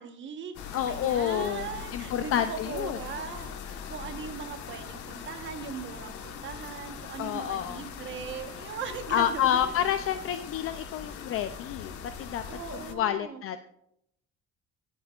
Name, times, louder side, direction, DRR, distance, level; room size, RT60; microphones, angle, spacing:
voice 1, 0.0-9.7 12.5-13.4, right 6 dB, 40° right, 7 dB, 1.1 m, -39 dB
sound 1, 0.5-12.9, left 7 dB, 90° left, 1.3 m, -41 dB
voice 2, 0.7-3.0 7.2-7.8 9.1-11.9 12.2-12.4 12.9-13.6, left 10 dB, 50° left, 10 dB, 0.4 m, -29 dB
23.5 x 8.1 x 2.4 m, 0.79 s
cardioid pair, 170°, 29 cm